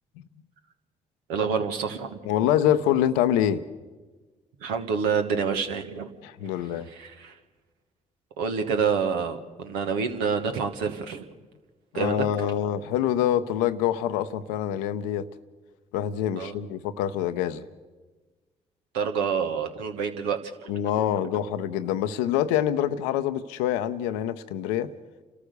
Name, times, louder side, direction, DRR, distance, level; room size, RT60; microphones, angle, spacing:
voice 1, 1.3-2.2 4.6-6.1 6.9-7.3 8.4-11.2 11.9-12.3 16.4-16.6 18.9-20.8, right 6 dB, 85° right, 6 dB, 1.4 m, -27 dB
voice 2, 2.2-3.6 6.2-6.9 11.9-15.3 15.9-17.6 20.7-24.9, left 10 dB, 90° left, 12 dB, 0.7 m, -25 dB
29.0 x 13.5 x 6.7 m, 1.3 s
hypercardioid pair, 45°, 16 cm